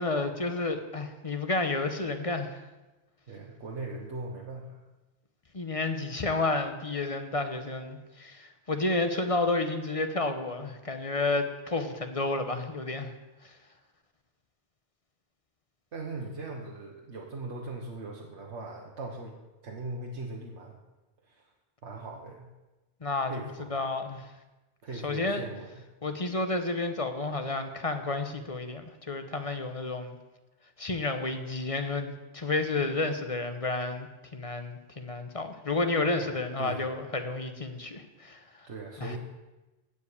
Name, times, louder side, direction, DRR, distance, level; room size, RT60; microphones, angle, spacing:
voice 1, 0.0-2.6 5.5-13.1 13.4-13.5 23.0-23.3 23.7-24.3 25.0-25.4 26.0-30.2 30.8-34.1 34.3-38.4 39.0-39.1, left 2 dB, 30° left, 7 dB, 1.0 m, -31 dB
voice 2, 3.3-4.8 15.9-19.4 19.6-20.8 21.2-21.5 21.8-22.5 23.2-23.7 24.8-25.8 36.2-37.0 38.6-39.2, right 3 dB, 85° right, -1 dB, 1.6 m, -40 dB
15.0 x 5.2 x 8.5 m, 1.1 s
omnidirectional pair, 1.1 m